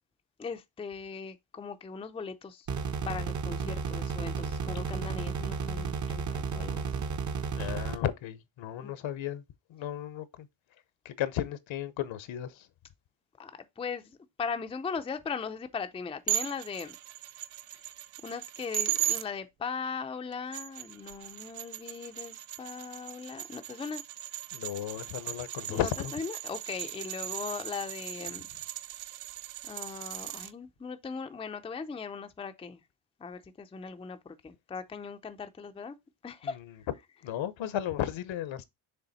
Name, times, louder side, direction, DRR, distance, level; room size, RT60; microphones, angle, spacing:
voice 1, 0.4-2.7 3.0-7.0 8.8-8.9 13.4-17.0 18.2-24.0 25.7-28.5 29.6-32.8 33.2-36.0 36.2-36.6, left 5 dB, 10° left, 0.4 m, -39 dB
sound 1, 2.7-8.0, right 5 dB, 35° right, 0.7 m, -33 dB
voice 2, 7.6-9.4 9.7-10.5 11.0-12.7 24.5-26.1 36.4-36.6 37.2-38.6, left 11 dB, 70° left, 0.9 m, -34 dB
sound 2, 16.3-19.2 20.3-30.5, right 15 dB, 85° right, 0.7 m, -37 dB
6.9 x 3.5 x 4.1 m
cardioid pair, 150°, 49 cm